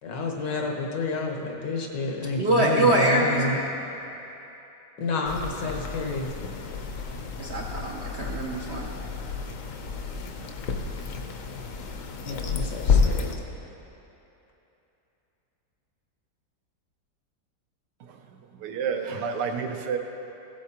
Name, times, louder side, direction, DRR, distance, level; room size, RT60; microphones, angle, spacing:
voice 1, 0.0-3.6 5.0-6.3 12.2-13.3, left 3 dB, 80° left, 1 dB, 1.7 m, -30 dB
voice 2, 2.4-3.4 7.4-8.9, right 1 dB, 60° right, -2 dB, 0.7 m, -23 dB
sound 1, 5.2-13.3, left 5 dB, 60° left, 0.9 m, -30 dB
voice 3, 18.6-20.0, right 6 dB, 75° right, 4 dB, 1.3 m, -30 dB
16.0 x 8.4 x 2.9 m, 3.0 s
omnidirectional pair, 1.9 m